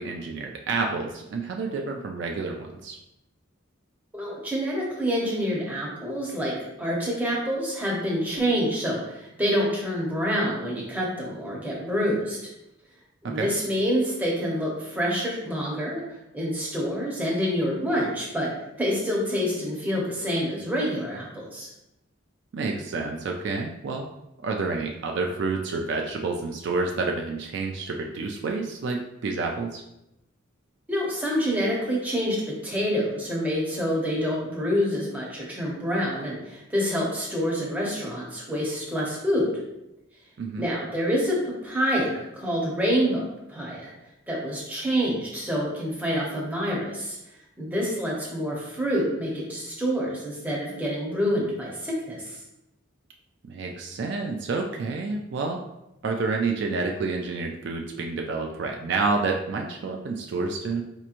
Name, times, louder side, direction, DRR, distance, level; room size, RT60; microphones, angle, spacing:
voice 1, 0.0-3.0 13.2-13.5 22.5-24.1 24.4-29.8 40.4-40.7 53.5-55.6 56.0-60.8, right 3 dB, 60° right, 2 dB, 0.3 m, -29 dB
voice 2, 4.1-12.4 13.2-16.0 16.3-18.5 18.8-21.7 30.9-39.5 40.6-43.9 44.3-47.2 47.6-52.4, equal, 10° right, -4 dB, 0.8 m, -27 dB
4.3 x 2.9 x 2.4 m, 0.89 s
head